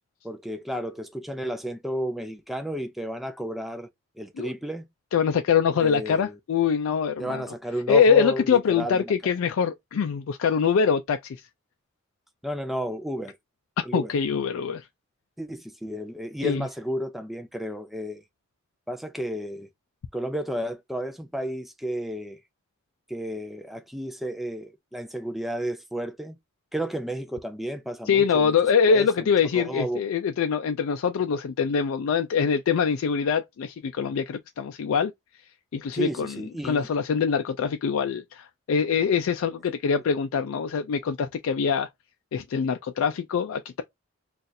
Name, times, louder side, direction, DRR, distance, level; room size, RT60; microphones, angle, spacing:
voice 1, 0.2-3.9 4.2-4.9 5.7-6.4 7.2-9.3 12.4-13.4 13.9-14.1 15.4-18.2 18.9-19.7 20.1-22.4 23.1-26.4 26.7-28.5 28.9-30.0 35.9-36.9, equal, ahead, 0.3 m, -32 dB
voice 2, 5.1-7.4 7.9-11.4 13.8-14.9 16.4-16.6 28.1-35.1 35.7-36.4 36.6-41.9 42.3-43.8, left 6 dB, 90° left, 0.4 m, -24 dB
4.0 x 2.4 x 2.6 m
head